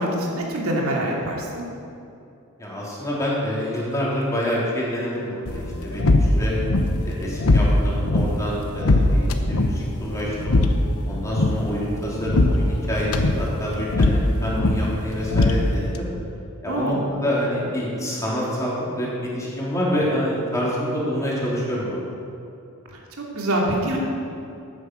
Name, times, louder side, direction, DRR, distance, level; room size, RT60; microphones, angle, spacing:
voice 1, 0.0-1.6 16.7-17.0 23.2-24.0, right 1 dB, 70° right, -2 dB, 2.8 m, -25 dB
voice 2, 2.6-6.5 7.0-10.6 11.1-16.1 16.6-22.0, equal, 15° left, -6 dB, 3.6 m, -27 dB
sound 1, 5.5-16.0, left 1 dB, 75° left, 1.0 m, -21 dB
13.5 x 9.9 x 6.3 m, 2.7 s
head